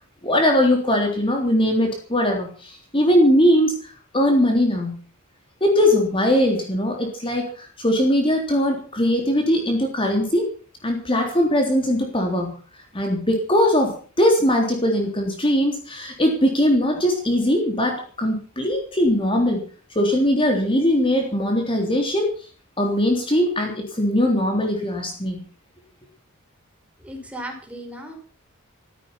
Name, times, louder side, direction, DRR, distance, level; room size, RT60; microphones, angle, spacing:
voice 1, 0.2-5.0 5.6-10.5 10.8-12.5 12.9-19.6 20.0-22.3 22.8-25.4, left 1 dB, 25° left, 2 dB, 3.6 m, -20 dB
voice 2, 27.0-28.1, right 1 dB, 5° right, 2 dB, 5.3 m, -36 dB
15.5 x 15.0 x 5.9 m, 0.40 s
head